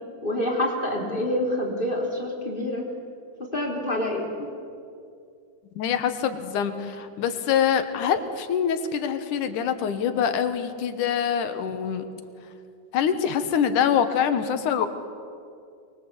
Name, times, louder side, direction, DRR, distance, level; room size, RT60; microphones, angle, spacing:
voice 1, 0.2-2.8 3.5-4.5, left 1 dB, 15° left, -1 dB, 3.4 m, -27 dB
voice 2, 5.8-12.0 12.9-14.9, left 8 dB, 85° left, 9 dB, 2.8 m, -25 dB
24.0 x 22.0 x 8.1 m, 2.4 s
omnidirectional pair, 3.5 m